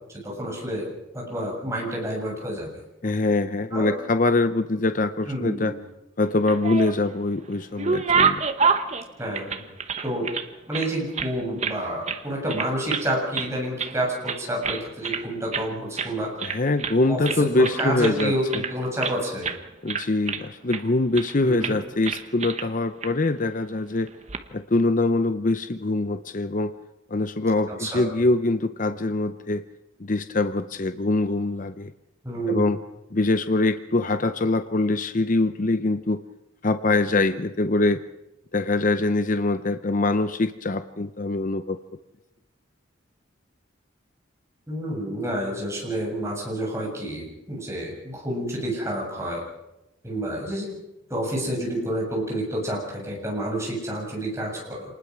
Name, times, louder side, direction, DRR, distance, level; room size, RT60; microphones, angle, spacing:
voice 1, 0.1-0.9 1.1-2.7 3.7-3.9 5.3-5.8 9.2-9.6 10.0-10.3 10.7-16.3 17.1-19.5 21.4-21.7 27.8-28.1 32.2-32.7 44.7-49.4 50.0-50.7 51.1-54.8, right 1 dB, 15° right, -2 dB, 7.2 m, -29 dB
voice 2, 3.0-5.7 6.2-8.4 16.4-18.6 19.8-24.1 24.5-26.7 27.1-29.6 30.0-31.9 32.5-32.8 33.1-36.2 36.6-38.0 38.5-41.8, left 2 dB, 40° left, 10 dB, 0.7 m, -23 dB
sound 1, 6.3-7.2 7.5-10.5 10.7-11.8 12.1-12.2 12.5-13.1 13.3-14.0 14.3-15.2 15.5-15.7 16.0-16.1 16.4-17.0 17.2-19.2 19.4-19.6 19.9-20.8 21.1-21.3 21.6-21.8 22.0-22.7 23.0-23.1 24.1-24.4, right 5 dB, 35° right, 1.1 m, -27 dB
26.5 x 20.0 x 6.1 m, 0.92 s
head